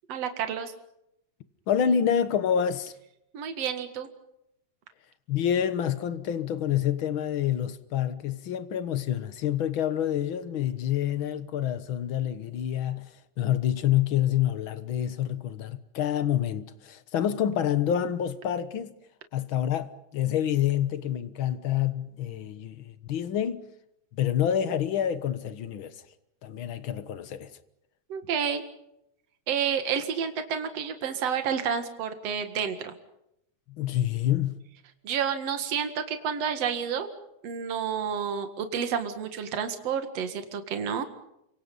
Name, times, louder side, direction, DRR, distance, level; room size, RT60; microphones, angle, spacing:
voice 1, 0.1-0.7 3.3-4.1 28.1-28.6 29.5-32.9 35.0-37.1 37.4-41.0, right 7 dB, 55° right, 2.9 m, -30 dB
voice 2, 1.7-2.9 5.3-13.1 13.4-18.9 19.3-23.6 24.1-25.9 26.4-27.5 33.7-34.6, left 10 dB, 55° left, 1.6 m, -27 dB
29.5 x 25.5 x 5.5 m
omnidirectional pair, 3.5 m